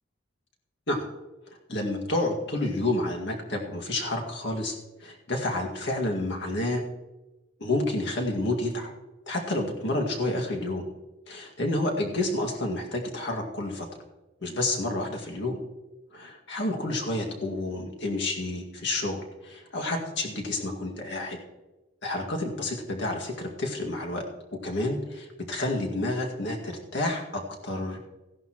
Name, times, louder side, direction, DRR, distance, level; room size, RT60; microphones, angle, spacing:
voice 1, 1.7-4.7 5.0-6.8 7.6-8.9 9.3-10.8 11.3-13.9 14.4-15.6 16.1-21.4 22.0-24.2 24.6-28.0, left 2 dB, 60° left, 1 dB, 2.1 m, -29 dB
16.0 x 11.0 x 3.0 m, 1.1 s
head